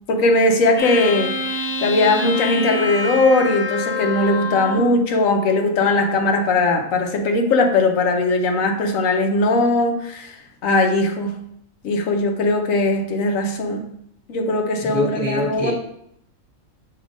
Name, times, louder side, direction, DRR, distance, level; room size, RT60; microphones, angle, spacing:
voice 1, 0.1-1.3 1.8-11.4 11.8-13.9 14.3-15.7, left 2 dB, 85° left, 4 dB, 1.2 m, -19 dB
sound 1, 0.8-5.0, left 2 dB, 60° left, 1.0 m, -26 dB
voice 2, 14.8-15.7, left 1 dB, 10° left, -5 dB, 1.4 m, -24 dB
6.7 x 2.9 x 4.9 m, 0.73 s
omnidirectional pair, 1.4 m